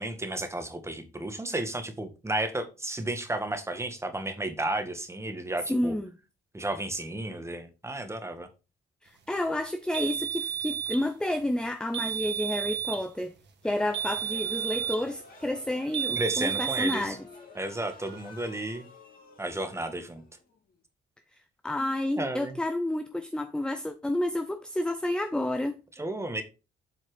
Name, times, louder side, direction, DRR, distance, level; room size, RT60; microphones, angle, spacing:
voice 1, 0.0-5.9 6.5-8.5 16.2-17.2 17.6-18.9 19.4-20.2 22.2-22.6 26.0-26.4, right 1 dB, 15° right, 1.8 m, -33 dB
voice 2, 5.7-6.1 9.0-13.3 13.6-17.2 21.6-25.8, left 1 dB, 5° left, 0.7 m, -30 dB
sound 1, 9.9-11.1 11.9-13.1 13.9-15.1 15.9-17.1, right 9 dB, 60° right, 1.6 m, -31 dB
sound 2, 13.6-20.8, left 3 dB, 45° left, 3.4 m, -51 dB
7.9 x 4.4 x 5.0 m
cardioid pair, 90°, 20 cm